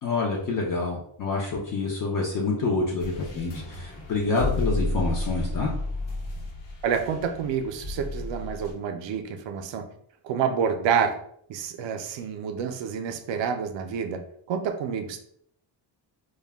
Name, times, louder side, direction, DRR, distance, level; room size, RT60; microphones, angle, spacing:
voice 1, 0.0-5.7, left 3 dB, 45° left, -2 dB, 0.5 m, -27 dB
sound 1, 3.0-8.7, left 2 dB, 75° left, 1.0 m, -32 dB
voice 2, 6.8-9.9 10.2-11.1 11.5-14.2 14.5-15.2, right 7 dB, 70° right, 7 dB, 0.5 m, -28 dB
2.2 x 2.1 x 3.3 m, 0.65 s
cardioid pair, 165°, 47 cm